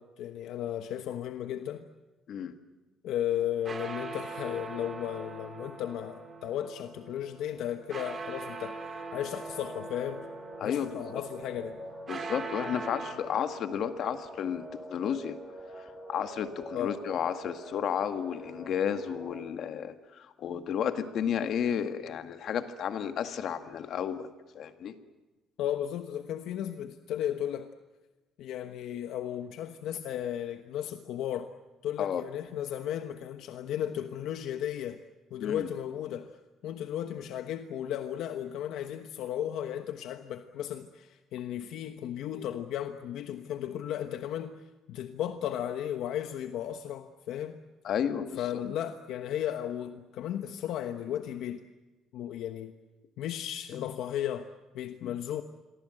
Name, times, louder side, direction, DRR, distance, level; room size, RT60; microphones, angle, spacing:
voice 1, 0.0-1.9 3.0-10.3 10.6-11.8 16.7-17.0 25.6-27.7 28.4-31.5 31.8-35.0 35.3-36.3 36.6-47.6 48.4-51.6 52.1-52.7 53.2-55.4, left 10 dB, 70° left, 8 dB, 1.1 m, -35 dB
sound 1, 3.4-13.1, right 3 dB, 30° right, 3.4 m, -41 dB
sound 2, 9.3-19.4, right 1 dB, 5° left, 4.4 m, -45 dB
voice 2, 10.6-11.2 12.1-15.4 15.8-24.9 32.0-32.2 35.4-35.7 47.8-48.6 53.7-54.0 55.0-55.1, left 8 dB, 55° left, 8 dB, 1.8 m, -32 dB
28.0 x 23.0 x 7.8 m, 1.2 s
cardioid pair, 150°, 0 cm